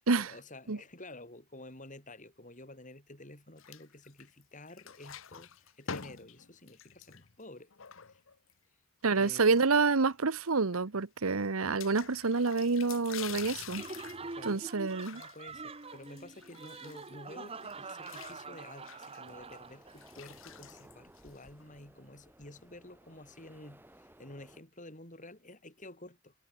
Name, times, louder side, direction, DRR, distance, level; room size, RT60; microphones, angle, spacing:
voice 1, 0.1-7.7 8.1-8.2 9.1-9.5 14.2-14.6 15.1-26.3, left 1 dB, 35° left, 5.8 m, -51 dB
sound 1, 3.6-4.4 4.7-8.5 9.1-10.1 10.4-10.5 10.7-10.8 11.8-17.3 17.6-21.6, left 7 dB, 65° left, 1.0 m, -47 dB
voice 2, 9.0-13.8 14.4-15.2, right 4 dB, 80° right, 1.0 m, -28 dB
Laughter, 13.7-20.1, right 4 dB, 25° right, 1.1 m, -45 dB
sound 2, 19.3-24.6, right 1 dB, 10° right, 3.7 m, -58 dB
head